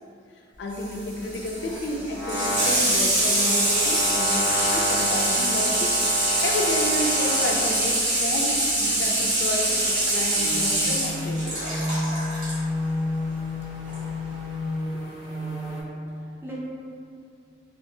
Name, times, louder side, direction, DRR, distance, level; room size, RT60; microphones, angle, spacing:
voice 1, 0.6-5.9 6.4-11.9, left 1 dB, 65° left, 0 dB, 0.4 m, -31 dB
Water tap faucet / Sink (filling or washing), 0.7-12.6 13.9-14.0, right 1 dB, 65° right, 1.1 m, -24 dB
sound 1, 0.8-8.0 9.2-15.8, left 1 dB, 85° right, 1.5 m, -31 dB
voice 2, 14.9-15.8 16.2-16.5, right 1 dB, 10° right, -6 dB, 0.4 m, -45 dB
3.8 x 2.3 x 2.6 m, 2.5 s
head